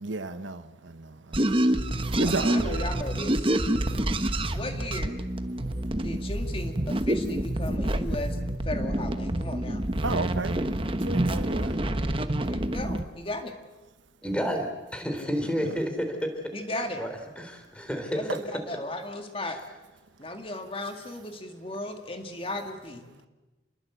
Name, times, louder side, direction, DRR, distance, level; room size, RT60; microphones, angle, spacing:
voice 1, 0.0-0.6 2.2-2.9 10.0-10.6 11.0-11.8 15.6-15.8 18.3-18.4, right 3 dB, 75° right, 1.0 m, -31 dB
sound 1, 1.3-13.0, right 1 dB, 30° right, 1.2 m, -27 dB
voice 2, 2.5-3.5 4.5-5.2 6.0-9.8 12.5-13.5 15.1-15.5 16.5-17.0 18.1-19.6 20.2-23.1, left 1 dB, 30° left, 2.2 m, -36 dB
voice 3, 14.2-16.3 16.8-17.1 17.4-18.4 19.4-19.6, equal, 5° left, 3.7 m, -30 dB
28.5 x 21.5 x 8.2 m
head